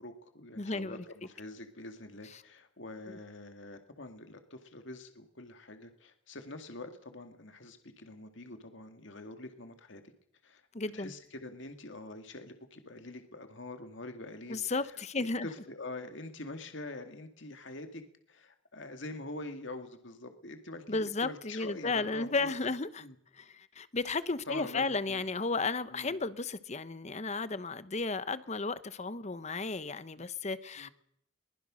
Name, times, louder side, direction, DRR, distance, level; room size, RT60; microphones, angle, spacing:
voice 1, 0.0-10.0 10.4-10.6 10.9-14.6 15.2-18.0 18.3-22.5 23.0-23.2 24.5-25.2 25.9-26.2 30.8-30.9, left 2 dB, 65° left, 2.2 m, -45 dB
voice 2, 0.5-1.0 2.3-2.4 3.1-3.2 10.7-11.1 14.5-15.5 20.9-23.0 23.3-30.9, left 3 dB, 35° left, 0.9 m, -34 dB
22.5 x 20.0 x 6.3 m
head